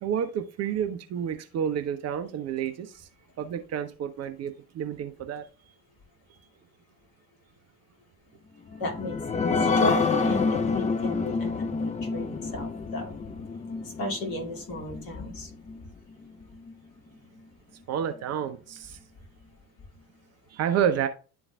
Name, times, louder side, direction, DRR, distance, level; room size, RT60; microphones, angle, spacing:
voice 1, 0.0-3.1 3.4-5.7 17.9-19.0 20.5-21.1, right 8 dB, 35° right, 0.7 m, -30 dB
sound 1, 8.7-15.8 16.2-16.3 16.7-16.8, left 4 dB, 15° left, 0.6 m, -28 dB
voice 2, 8.8-13.2 14.0-15.5, left 2 dB, 50° left, 2.3 m, -34 dB
11.0 x 3.9 x 2.3 m
figure-of-eight pair, 60°, 46 cm